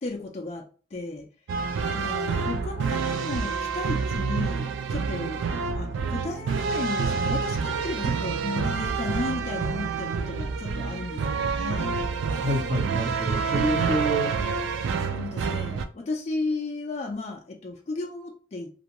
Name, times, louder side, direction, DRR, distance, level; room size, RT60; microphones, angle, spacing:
voice 1, 0.0-0.6 0.9-1.3 1.9-5.4 5.7-12.0 13.6-13.9 15.1-18.7, left 3 dB, 35° left, 1 dB, 0.4 m, -34 dB
sound 1, 1.5-15.8, right 5 dB, 75° right, 0.3 m, -28 dB
voice 2, 12.3-14.3, equal, 40° right, -4 dB, 1.0 m, -28 dB
2.5 x 2.2 x 2.9 m, 0.39 s
head